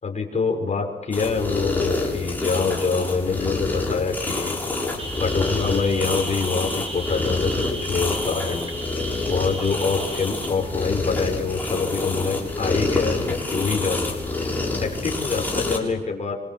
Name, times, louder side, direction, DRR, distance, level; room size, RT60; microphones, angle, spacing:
voice 1, 0.0-4.6 5.2-8.7 9.2-14.2 14.8-16.4, left 4 dB, 40° left, 2 dB, 6.1 m, -25 dB
sound 1, 1.1-15.8, left 2 dB, 10° left, 7.3 m, -27 dB
sound 2, 5.0-10.5, right 1 dB, 35° right, 5.7 m, -35 dB
28.0 x 25.5 x 7.9 m, 1.1 s
wide cardioid pair, 120°, 18 cm